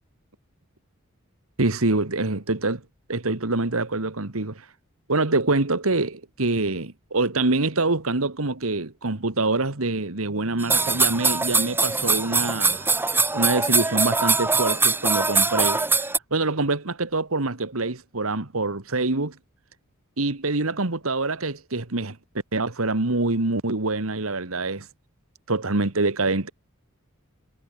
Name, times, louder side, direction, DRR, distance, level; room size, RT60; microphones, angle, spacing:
voice 1, 1.6-2.8 3.1-4.7 5.1-12.9 13.3-15.8 16.3-19.4 20.2-22.2 22.5-24.9 25.5-26.5, right 2 dB, 70° right, 1.9 m, -25 dB
sound 1, 10.6-16.2, right 4 dB, 10° right, 0.8 m, -22 dB
head